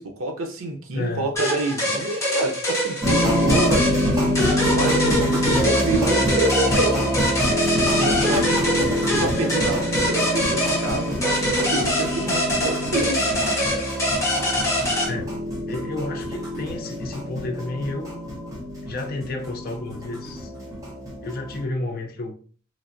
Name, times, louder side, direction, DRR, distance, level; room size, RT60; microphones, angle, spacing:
voice 1, 0.0-4.2 4.8-7.3 7.9-13.6, right 2 dB, 80° right, 3 dB, 0.7 m, -28 dB
voice 2, 0.9-1.3 5.5-5.6 8.9-9.4 15.1-15.3 15.7-18.1 18.8-20.5 21.2-22.4, left 2 dB, 45° left, 4 dB, 0.5 m, -31 dB
sound 1, 1.4-15.1, equal, 15° left, 1.0 m, -24 dB
sound 2, 3.0-21.6, equal, 15° right, 0.8 m, -25 dB
3.2 x 2.4 x 2.6 m, 0.43 s
head